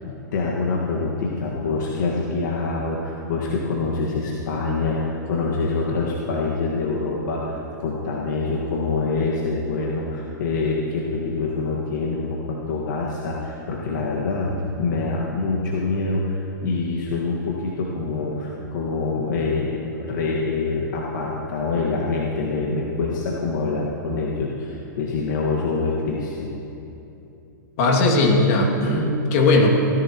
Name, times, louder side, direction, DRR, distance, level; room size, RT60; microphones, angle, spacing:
voice 1, 0.0-14.5 14.8-26.5, left 3 dB, 65° left, -3 dB, 1.7 m, -25 dB
voice 2, 27.8-29.7, left 2 dB, 50° left, -1 dB, 2.3 m, -18 dB
17.5 x 14.0 x 3.0 m, 2.9 s
hypercardioid pair, 125°, 11 cm